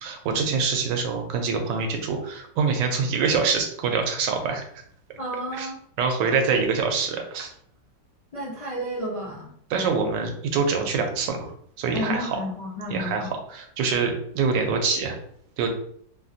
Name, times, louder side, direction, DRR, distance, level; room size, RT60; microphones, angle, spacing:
voice 1, 0.0-4.8 5.5-5.7 6.0-7.5 9.7-12.4 12.9-15.2 15.6-15.7, right 5 dB, 85° right, 4 dB, 1.3 m, -25 dB
voice 2, 5.2-5.8 6.3-6.4 8.3-9.5 11.9-13.3, equal, 60° left, -7 dB, 0.3 m, -31 dB
3.2 x 2.4 x 2.6 m, 0.64 s
omnidirectional pair, 1.9 m